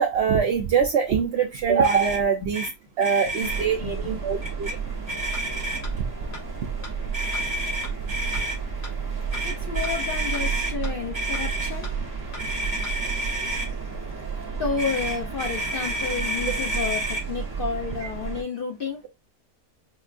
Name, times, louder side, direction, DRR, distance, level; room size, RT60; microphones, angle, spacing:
voice 1, 0.0-2.7 3.0-4.7 18.0-18.1, right 6 dB, 70° right, 0.6 m, -23 dB
Motor vehicle (road), 1.8-2.2 2.5-2.7 3.0-3.6 4.4-4.7 5.1-6.0 7.1-8.6 9.3-10.7 11.1-11.7 12.4-13.7 14.8-17.2, right 1 dB, 35° right, 1.3 m, -30 dB
sound 1, 3.4-18.4, right 6 dB, 20° right, 0.7 m, -32 dB
voice 2, 3.8-4.4 5.1-5.5 9.4-11.9 12.6-12.7 14.3-19.0, left 5 dB, 70° left, 0.5 m, -31 dB
sound 2, 5.3-5.4 5.8-5.9 6.3-6.4 6.8-6.9 7.3-7.4 7.8-7.9 8.3-8.4 8.8-8.9 9.3-9.4 9.8-9.9 10.3-10.4 10.8-10.9 11.3-11.4 11.8-11.9 12.3-12.4 12.8-12.9, left 2 dB, 85° left, 1.8 m, -39 dB
5.0 x 2.2 x 2.4 m
omnidirectional pair, 1.7 m